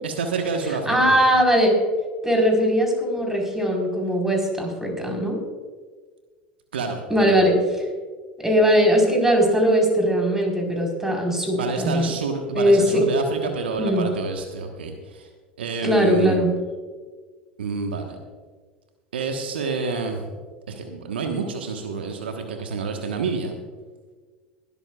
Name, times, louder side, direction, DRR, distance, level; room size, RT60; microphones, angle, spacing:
voice 1, 0.0-1.1 6.7-7.0 11.6-15.3 15.6-16.4 17.6-18.2 19.1-20.2 20.7-23.5, right 4 dB, 80° right, 4 dB, 1.3 m, -28 dB
voice 2, 0.9-1.7 2.2-5.4 7.1-7.8 8.4-12.1 12.5-13.0 13.8-14.1 15.8-16.5, equal, 10° right, 1 dB, 4.2 m, -20 dB
21.5 x 12.5 x 2.4 m, 1.4 s
hypercardioid pair, 80°, 6 cm